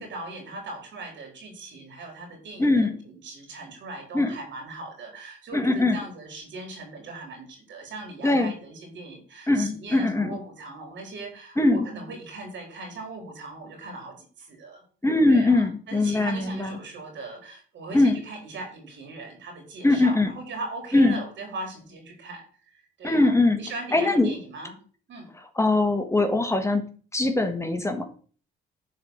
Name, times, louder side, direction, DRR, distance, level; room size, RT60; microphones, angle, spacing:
voice 1, 0.0-14.8 15.3-22.4 22.7-24.8 25.1-25.3, right 3 dB, 70° right, 3 dB, 4.2 m, -39 dB
voice 2, 2.6-3.0 4.1-4.3 5.5-6.0 8.2-8.5 9.5-10.4 11.6-11.9 15.0-16.7 17.9-18.2 19.8-20.3 20.9-21.2 23.0-23.6 23.9-24.3 25.5-26.8 27.1-28.0, left 2 dB, 15° left, 5 dB, 1.6 m, -21 dB
10.5 x 4.8 x 6.5 m, 0.42 s
cardioid pair, 90°, 20 cm